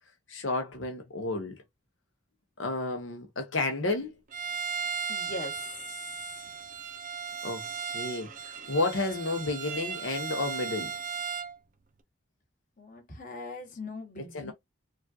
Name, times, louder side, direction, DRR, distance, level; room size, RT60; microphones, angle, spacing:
voice 1, 0.3-1.6 2.6-4.1 7.4-10.9 14.3-14.5, left 2 dB, 80° left, 0.9 m, -31 dB
Bowed string instrument, 4.3-11.6, right 6 dB, 40° right, 0.6 m, -36 dB
voice 2, 5.1-5.6 12.8-14.5, left 2 dB, 40° left, 1.3 m, -40 dB
4.9 x 2.4 x 2.7 m
head